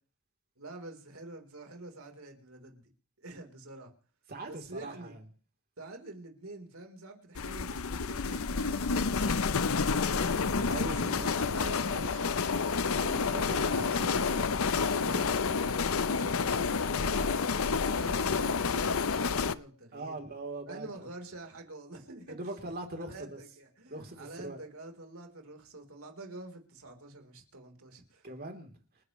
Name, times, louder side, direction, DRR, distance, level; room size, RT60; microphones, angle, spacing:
voice 1, 0.6-2.9 3.2-3.9 4.5-5.2 5.8-9.8 10.8-12.5 13.2-14.6 14.9-16.6 16.9-17.6 17.9-20.2 20.7-22.5 22.9-28.3, right 2 dB, 70° right, 3.8 m, -46 dB
voice 2, 4.3-5.2 10.1-10.3 10.5-11.4 12.9-13.9 19.9-21.1 22.4-23.4 23.9-24.6 28.2-28.7, right 2 dB, 45° right, 3.4 m, -41 dB
sound 1, 7.3-19.5, left 5 dB, 70° left, 0.7 m, -29 dB
29.5 x 10.5 x 3.2 m
head